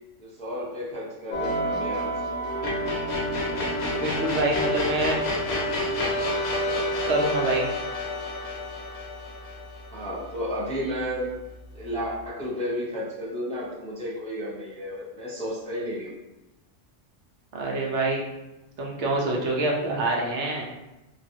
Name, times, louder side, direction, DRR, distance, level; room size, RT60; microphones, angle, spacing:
voice 1, 0.2-2.1 2.4-2.8 9.9-11.3 11.7-16.1, equal, 10° left, -8 dB, 0.4 m, -32 dB
sound 1, 1.3-10.5, left 1 dB, 65° left, 1.0 m, -28 dB
voice 2, 4.0-5.2 7.1-7.7 17.5-18.2 18.8-20.7, right 2 dB, 75° right, -2 dB, 1.0 m, -26 dB
3.1 x 2.4 x 2.7 m, 1.0 s
omnidirectional pair, 1.2 m